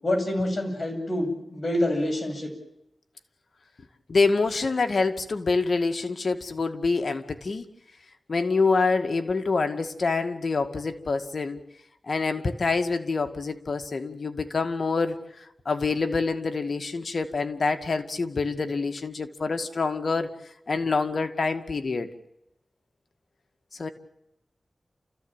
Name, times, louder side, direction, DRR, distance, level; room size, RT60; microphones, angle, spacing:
voice 1, 0.0-2.5, left 1 dB, 50° left, 4 dB, 7.9 m, -27 dB
voice 2, 4.1-7.7 8.3-11.6 12.0-20.3 20.7-22.1 23.7-23.9, left 4 dB, 70° left, 8 dB, 2.1 m, -26 dB
29.5 x 15.0 x 9.0 m, 0.83 s
cardioid pair, 45°, 0 cm